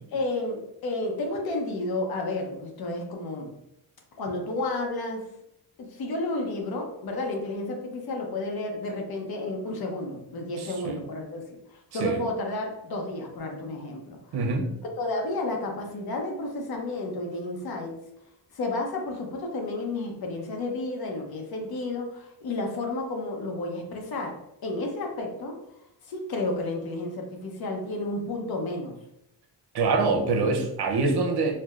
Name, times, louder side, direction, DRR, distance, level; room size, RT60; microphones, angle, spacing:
voice 1, 0.1-3.5 4.2-5.3 5.8-14.4 15.0-18.0 18.5-25.6 26.1-29.0, left 2 dB, 65° left, 2 dB, 0.8 m, -31 dB
voice 2, 10.6-11.0 12.0-12.2 14.3-14.7 29.7-31.6, right 3 dB, 75° right, 3 dB, 0.8 m, -25 dB
4.6 x 2.1 x 2.4 m, 0.80 s
cardioid pair, 110°, 40 cm